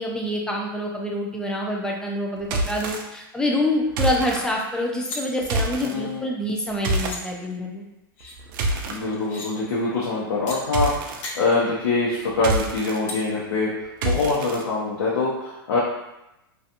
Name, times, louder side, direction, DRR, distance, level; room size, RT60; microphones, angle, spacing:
voice 1, 0.0-7.8, left 1 dB, 5° left, -1 dB, 0.4 m, -26 dB
sound 1, 2.4-3.0 3.9-4.4 5.4-5.9 6.8-7.2 8.2-9.0 10.7-11.2 12.3-13.0 14.0-14.6, right 2 dB, 60° right, 0.4 m, -26 dB
sound 2, 4.6-5.2 6.6-6.7 7.0-7.2 8.2-8.4 9.1-9.5 10.5-10.6 11.0-11.3 13.1-13.2, left 3 dB, 45° left, 0.8 m, -36 dB
voice 2, 5.8-6.2 8.8-13.7 14.0-15.8, left 3 dB, 80° left, -6 dB, 0.7 m, -24 dB
2.4 x 2.4 x 2.7 m, 0.91 s
hypercardioid pair, 125°, 12 cm